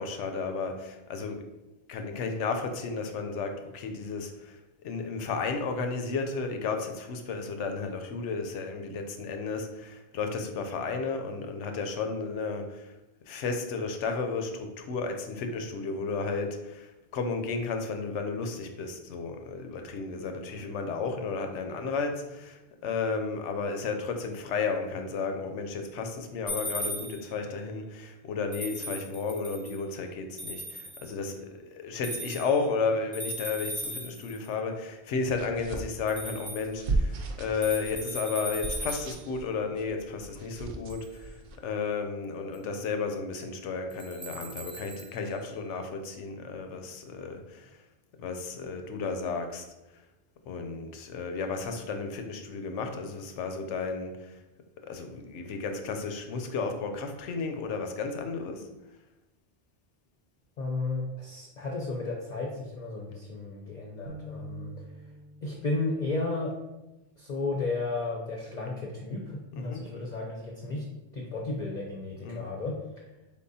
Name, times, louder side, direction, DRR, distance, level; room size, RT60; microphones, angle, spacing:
voice 1, 0.0-1.5 1.9-4.6 4.8-12.9 13.3-47.7 48.2-49.7 50.5-54.4 54.9-58.7 69.5-69.9 72.2-72.5, left 4 dB, 90° left, 5 dB, 0.9 m, -33 dB
sound 1, 26.5-27.4 28.5-29.8 30.4-31.1 32.0-32.7 33.1-34.5 36.1-36.7 37.6-39.2 40.9-41.1 42.5-42.6 43.9-45.2, right 1 dB, 5° right, 0.9 m, -38 dB
sound 2, 35.2-41.6, right 2 dB, 60° right, 0.6 m, -36 dB
voice 2, 60.6-64.7 65.4-66.6 67.2-70.8 71.1-72.8, left 3 dB, 50° left, -1 dB, 0.6 m, -33 dB
sound 3, 64.1-67.6, right 2 dB, 80° right, 1.0 m, -48 dB
4.3 x 3.6 x 2.7 m, 0.99 s
omnidirectional pair, 1.2 m